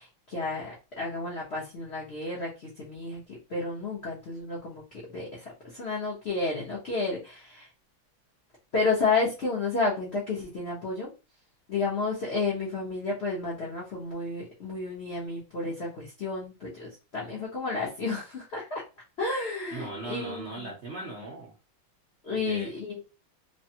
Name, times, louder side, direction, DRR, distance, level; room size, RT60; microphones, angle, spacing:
voice 1, 0.0-7.7 8.7-11.1 11.7-18.8 19.2-20.5 22.2-23.0, left 3 dB, 55° left, -5 dB, 0.7 m, -31 dB
voice 2, 19.7-21.5 22.3-22.7, right 2 dB, 75° right, -3 dB, 0.6 m, -38 dB
3.3 x 2.2 x 2.7 m, 0.30 s
omnidirectional pair, 2.2 m